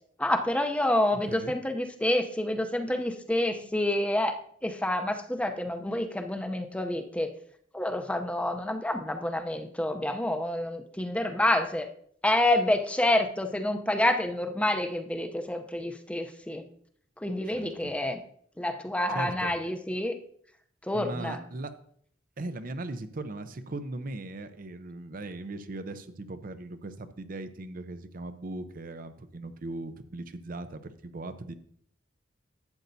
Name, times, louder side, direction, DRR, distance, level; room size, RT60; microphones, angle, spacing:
voice 1, 0.2-7.3 7.7-11.9 12.2-16.6 17.2-18.2 18.6-20.2 20.8-21.4, left 1 dB, 5° left, 5 dB, 0.6 m, -28 dB
voice 2, 17.5-17.9 19.1-19.5 20.9-21.7 22.4-31.5, right 2 dB, 50° right, 11 dB, 0.6 m, -38 dB
11.5 x 8.1 x 2.7 m, 0.63 s
head